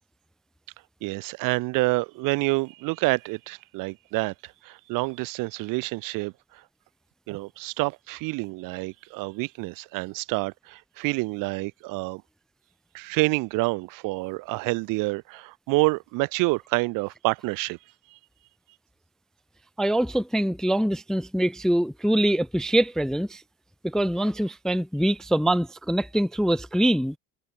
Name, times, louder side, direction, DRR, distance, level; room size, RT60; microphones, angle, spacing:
voice 1, 1.0-6.6 7.3-12.2 12.9-17.8 18.1-18.2, right 24 dB, 70° right, 0.9 m, -28 dB
voice 2, 19.8-23.4 23.8-27.2, right 1 dB, ahead, 0.3 m, -24 dB
cardioid pair, 120°, 34 cm